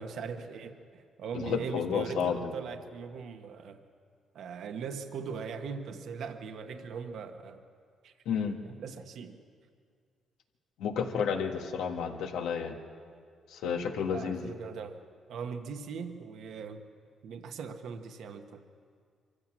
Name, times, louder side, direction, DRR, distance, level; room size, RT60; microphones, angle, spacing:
voice 1, 0.0-3.8 4.3-7.6 8.0-8.1 8.7-9.4 14.1-15.0 15.3-16.8 17.2-18.6, right 6 dB, 70° right, 6 dB, 1.3 m, -40 dB
voice 2, 1.3-2.5 8.2-8.6 10.8-12.8 13.5-14.5, left 6 dB, 85° left, 4 dB, 1.6 m, -31 dB
24.0 x 15.0 x 7.5 m, 2.1 s
cardioid pair, 90°, 0 cm